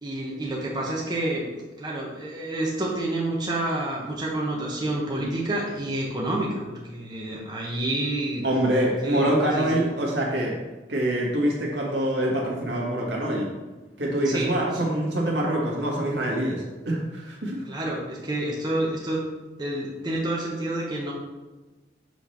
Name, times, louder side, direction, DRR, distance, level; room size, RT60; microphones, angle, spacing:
voice 1, 0.0-1.5 1.8-8.4 9.0-9.8 14.2-14.8 17.6-19.2 19.6-21.1, right 1 dB, 25° right, -4 dB, 1.0 m, -29 dB
voice 2, 8.4-10.6 10.9-13.5 14.0-17.6, right 1 dB, 75° right, -3 dB, 1.8 m, -25 dB
6.2 x 3.3 x 5.8 m, 1.2 s
head